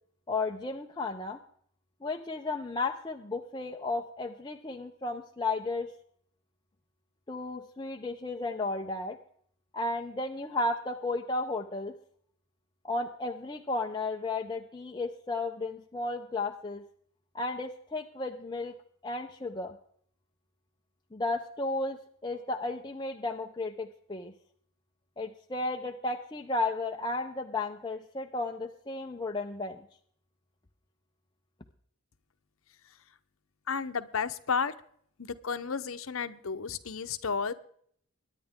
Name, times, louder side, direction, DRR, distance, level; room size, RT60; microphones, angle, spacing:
voice 1, 0.3-1.4 2.0-5.9 7.3-9.2 9.7-11.9 12.8-16.8 17.3-18.7 19.0-19.8 21.1-22.0 22.2-24.3 25.2-29.8, left 2 dB, 20° left, 2 dB, 0.6 m, -33 dB
voice 2, 33.7-34.7 35.2-37.5, left 5 dB, 70° left, 11 dB, 0.8 m, -32 dB
22.5 x 9.8 x 3.6 m, 0.64 s
head